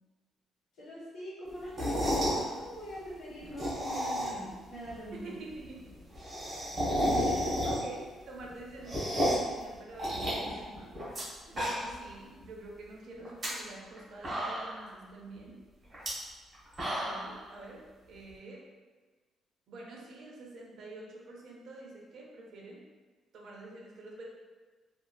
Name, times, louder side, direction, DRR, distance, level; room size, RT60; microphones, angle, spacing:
voice 1, 0.8-5.4, equal, 80° left, -6 dB, 1.0 m, -43 dB
sound 1, 1.6-2.4 3.4-4.5 4.9-5.0 5.2-5.3 5.5-5.6 5.8-8.0 8.4-9.5 10.0-11.2 11.5-12.1 12.4-12.5 13.2-13.5 13.9-14.0 14.2-14.9 15.9-16.1 16.5-17.3, equal, 20° right, 1.0 m, -31 dB
voice 2, 5.1-5.9 7.1-15.6 17.0-18.6 19.7-22.8 23.3-24.2, right 2 dB, 60° right, -2 dB, 0.5 m, -47 dB
3.0 x 2.4 x 2.2 m, 1.4 s
cardioid pair, 160°, 0 cm